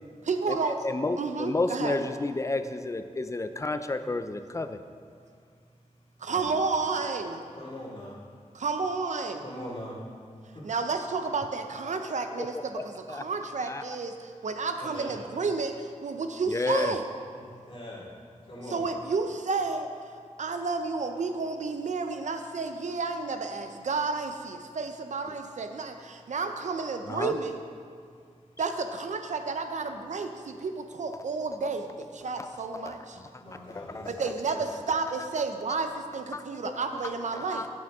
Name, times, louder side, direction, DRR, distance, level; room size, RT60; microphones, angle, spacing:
voice 1, 0.2-0.8 1.2-2.0 6.2-7.4 8.5-9.4 10.6-17.1 18.7-19.9 20.4-27.6 28.6-33.2 34.1-37.7, right 4 dB, 65° right, 6 dB, 0.6 m, -31 dB
voice 2, 0.8-4.8 12.8-13.2 13.7-13.8 16.5-16.9 27.1-27.3 31.6-31.7 32.4-32.5 32.7-33.3 33.7-34.3 36.3-36.7 37.4-37.7, left 2 dB, 25° left, 9 dB, 0.3 m, -31 dB
voice 3, 7.5-8.2 9.4-10.0 10.5-10.7 14.8-15.1 17.3-18.1 18.4-18.8 33.4-34.1 34.5-34.6, left 1 dB, 40° left, -7 dB, 2.1 m, -42 dB
8.6 x 6.5 x 3.6 m, 2.2 s
wide cardioid pair, 100°, 13 cm